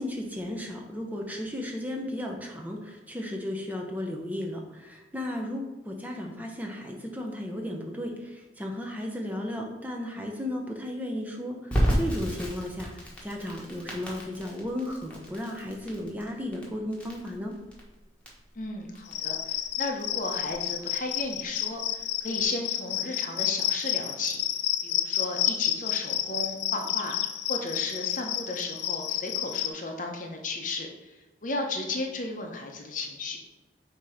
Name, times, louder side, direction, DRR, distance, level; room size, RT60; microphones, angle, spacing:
voice 1, 0.0-17.6, left 1 dB, 10° right, 1 dB, 0.7 m, -35 dB
Crackle, 11.7-22.4, equal, 5° left, 1.2 m, -33 dB
voice 2, 18.6-24.4 24.8-27.2 27.5-31.2 31.4-33.4, left 2 dB, 45° left, 3 dB, 0.8 m, -34 dB
Cricket, 19.1-29.7, left 12 dB, 75° left, 0.4 m, -30 dB
7.2 x 2.9 x 4.9 m, 1.1 s
head